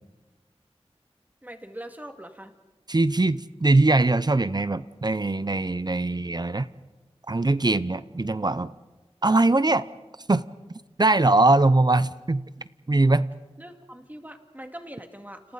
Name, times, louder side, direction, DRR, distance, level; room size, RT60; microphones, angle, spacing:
voice 1, 1.4-2.5 13.6-15.5, right 1 dB, 15° right, 5 dB, 2.3 m, -42 dB
voice 2, 2.9-6.7 7.3-8.7 9.2-9.8 10.3-10.4 11.0-12.5 12.9-13.3, right 2 dB, 40° right, 15 dB, 0.7 m, -21 dB
30.0 x 28.0 x 4.1 m, 1.2 s
wide cardioid pair, 45°, 11 cm